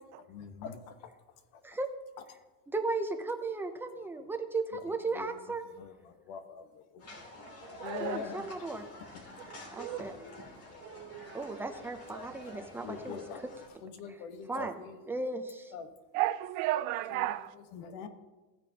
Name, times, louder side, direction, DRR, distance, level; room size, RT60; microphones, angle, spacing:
voice 1, 0.3-0.8 5.1-5.3 5.8-5.9 6.3-6.6 6.9-7.0 7.8-8.4 9.9-10.3 12.8-13.4 13.8-15.0 15.7-15.9 17.1-18.1, left 6 dB, 75° left, 8 dB, 1.3 m, -43 dB
voice 2, 2.7-5.6 8.0-8.9 9.7-10.2 11.3-13.5 14.1-14.2 14.5-14.8 15.1-15.7, right 3 dB, 5° right, 5 dB, 0.3 m, -36 dB
sound 1, 7.0-13.7, left 1 dB, 35° left, 2.4 m, -49 dB
voice 3, 7.8-8.2 9.8-10.0 10.9-11.3 14.6-14.7 16.1-17.5, right 15 dB, 85° right, 13 dB, 0.7 m, -33 dB
15.0 x 9.0 x 2.8 m, 1.2 s
cardioid pair, 155°, 44 cm